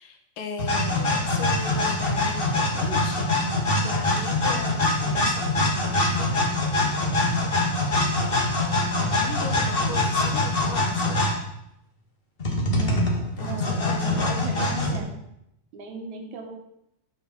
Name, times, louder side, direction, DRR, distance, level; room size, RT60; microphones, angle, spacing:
voice 1, 0.0-6.5 9.0-11.3 13.4-14.7, left 4 dB, 85° left, 4 dB, 3.3 m, -38 dB
sound 1, 0.6-11.4 12.4-15.0, left 2 dB, 25° left, 1.3 m, -24 dB
voice 2, 12.7-13.1 13.4-15.2 15.7-16.5, right 5 dB, 65° right, 4 dB, 2.9 m, -37 dB
12.0 x 6.0 x 7.7 m, 0.82 s
omnidirectional pair, 3.8 m